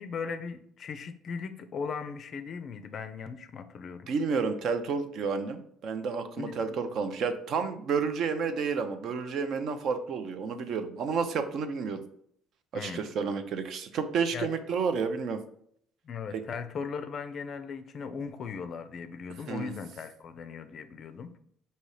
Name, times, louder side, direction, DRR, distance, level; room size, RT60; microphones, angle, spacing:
voice 1, 0.0-4.1 6.4-6.5 12.7-13.1 14.3-14.5 16.0-21.4, left 5 dB, 40° left, 9 dB, 0.4 m, -38 dB
voice 2, 4.1-12.0 12.7-15.4 16.3-16.4 19.5-19.7, right 5 dB, 50° right, 9 dB, 0.5 m, -30 dB
5.4 x 2.7 x 3.2 m, 0.68 s
cardioid pair, 155°, 0 cm